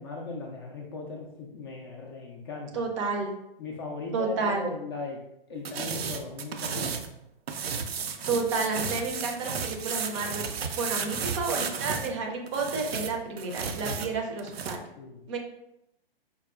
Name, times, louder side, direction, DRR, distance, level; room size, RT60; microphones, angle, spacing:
voice 1, 0.0-2.9 3.6-5.2 5.5-6.9 15.0-15.2, left 3 dB, 25° left, 0 dB, 0.4 m, -38 dB
voice 2, 2.7-3.4 4.1-4.7 8.3-10.5 10.7-14.8 15.3-15.4, right 4 dB, 30° right, 2 dB, 0.5 m, -30 dB
sound 1, 5.6-7.1 7.5-12.1 12.5-14.8, right 6 dB, 80° right, 0.5 m, -33 dB
5.0 x 2.1 x 2.3 m, 0.82 s
figure-of-eight pair, 125°, 30 cm